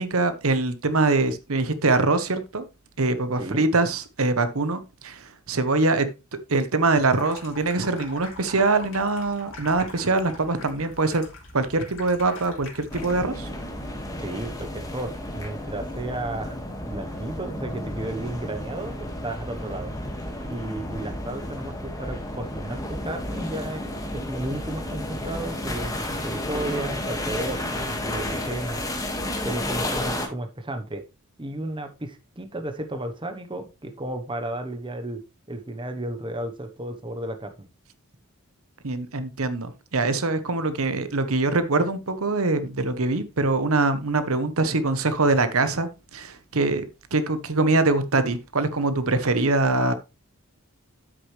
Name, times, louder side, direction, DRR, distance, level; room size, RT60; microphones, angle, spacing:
voice 1, 0.0-2.6 3.0-6.1 6.5-11.2 11.5-13.5 38.8-46.8 47.1-49.9, right 3 dB, 70° right, 1.0 m, -23 dB
Water tap faucet / Sink (filling or washing), 7.0-13.5, left 2 dB, 60° left, 2.7 m, -43 dB
sound 1, 12.9-30.3, left 1 dB, 15° left, 1.8 m, -32 dB
voice 2, 14.2-16.6 16.9-19.9 20.5-23.8 24.3-28.8 29.4-31.0 31.4-35.2 35.5-37.7, right 1 dB, 20° right, 1.0 m, -33 dB
9.8 x 8.1 x 3.2 m
head